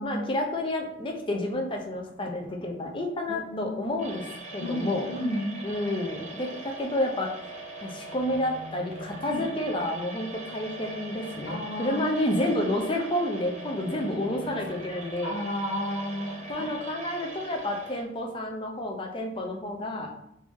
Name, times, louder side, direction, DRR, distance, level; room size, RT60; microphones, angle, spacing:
voice 1, 0.0-4.3 4.5-5.0 5.6-7.3 7.8-15.4 16.5-20.2, left 1 dB, 25° left, 2 dB, 0.5 m, -30 dB
voice 2, 3.3-3.8 4.6-5.6 9.2-9.4 11.5-12.0 13.8-14.6 15.2-16.7, equal, 85° left, 1 dB, 0.7 m, -33 dB
sound 1, 4.0-18.0, right 2 dB, 40° right, 0.8 m, -41 dB
3.2 x 2.6 x 3.5 m, 0.77 s
head